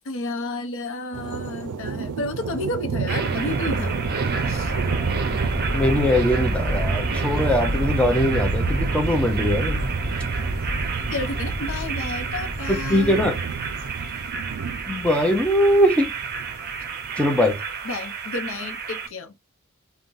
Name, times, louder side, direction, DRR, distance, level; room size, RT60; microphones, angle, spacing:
voice 1, 0.0-4.1 4.5-4.7 11.1-13.2 17.8-19.3, left 2 dB, 60° left, 0.6 m, -31 dB
sound 1, 1.1-17.2, right 6 dB, 85° right, 0.4 m, -33 dB
sound 2, 3.1-19.1, right 3 dB, 45° right, 0.6 m, -27 dB
voice 2, 5.7-9.9 12.7-13.4 14.9-16.1 17.2-17.6, equal, 5° left, 0.5 m, -21 dB
3.7 x 2.2 x 2.5 m
head